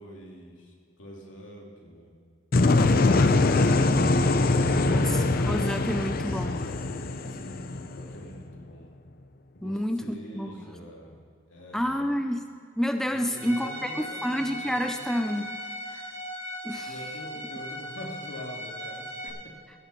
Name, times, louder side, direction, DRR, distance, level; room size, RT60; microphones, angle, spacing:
voice 1, 0.0-2.2 3.2-5.2 7.3-8.9 9.5-11.2 11.5-12.1 13.1-15.0 16.8-19.3, equal, 75° left, -2 dB, 2.8 m, -45 dB
sound 1, 2.5-8.4, left 2 dB, 50° left, 0.6 m, -23 dB
voice 2, 4.9-6.8 9.6-10.5 11.7-12.5 12.8-15.5 15.9-16.0 16.6-16.9, equal, ahead, 6 dB, 0.5 m, -29 dB
Bowed string instrument, 13.3-19.3, equal, 20° right, 4.1 m, -38 dB
16.5 x 7.3 x 6.9 m, 2.3 s
head